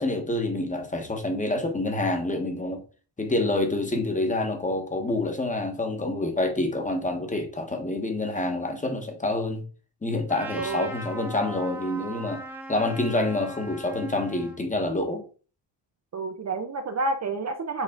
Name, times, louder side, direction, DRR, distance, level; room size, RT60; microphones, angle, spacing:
voice 1, 0.0-2.8 3.2-9.6 10.0-12.4 12.7-15.2, left 2 dB, 15° left, 1.3 m, -27 dB
Trumpet, 10.3-14.6, right 1 dB, 5° right, 1.1 m, -39 dB
voice 2, 10.6-10.9 16.1-17.8, right 3 dB, 35° right, 0.7 m, -29 dB
7.4 x 4.7 x 3.8 m
wide cardioid pair, 170°, 46 cm